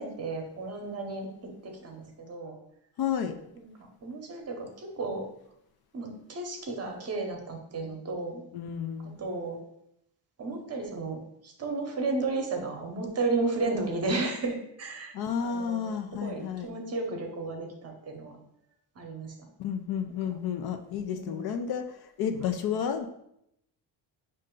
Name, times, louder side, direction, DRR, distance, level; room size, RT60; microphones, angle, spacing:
voice 1, 0.0-2.6 3.5-3.7 4.0-5.3 5.9-8.4 9.0-9.6 10.4-15.1 15.4-18.4 18.9-19.5 20.3-20.4 21.1-21.5 22.4-22.5, right 3 dB, 35° right, 2 dB, 0.8 m, -33 dB
voice 2, 3.0-3.4 8.5-9.2 15.1-16.7 19.6-23.1, left 7 dB, 60° left, 7 dB, 0.5 m, -31 dB
5.4 x 2.6 x 3.7 m, 0.77 s
cardioid pair, 150°, 44 cm